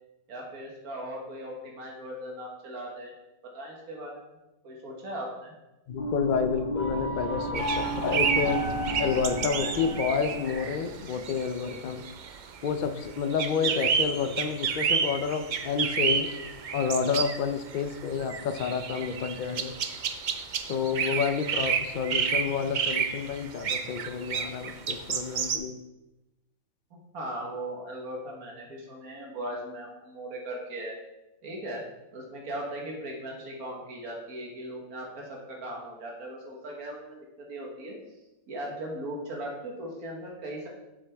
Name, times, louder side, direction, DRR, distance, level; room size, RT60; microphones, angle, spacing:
voice 1, 0.3-3.1 3.5-4.4 4.6-5.5 26.9-30.9 31.4-31.8 32.1-37.2 37.5-38.0 38.5-40.7, right 1 dB, 90° right, -1 dB, 1.9 m, -38 dB
voice 2, 5.9-8.7 9.0-12.1 12.6-16.3 16.7-19.7 20.7-25.8, left 6 dB, 75° left, 8 dB, 0.4 m, -29 dB
sound 1, 5.9-11.0, right 1 dB, 35° left, 2.9 m, -32 dB
sound 2, 7.5-25.6, right 6 dB, 70° right, 0.4 m, -30 dB
7.5 x 7.4 x 3.5 m, 0.98 s
omnidirectional pair, 1.5 m